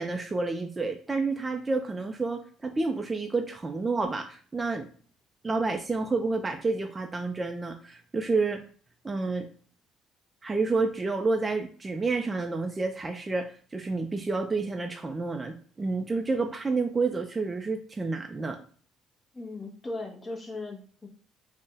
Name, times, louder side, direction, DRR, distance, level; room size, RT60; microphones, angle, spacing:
voice 1, 0.0-4.9 5.4-8.6 9.0-9.5 10.4-18.6, right 3 dB, 25° right, 5 dB, 0.3 m, -29 dB
voice 2, 19.3-21.1, left 2 dB, 25° left, 1 dB, 0.7 m, -38 dB
2.6 x 2.1 x 3.6 m, 0.43 s
supercardioid pair, 80°, 0 cm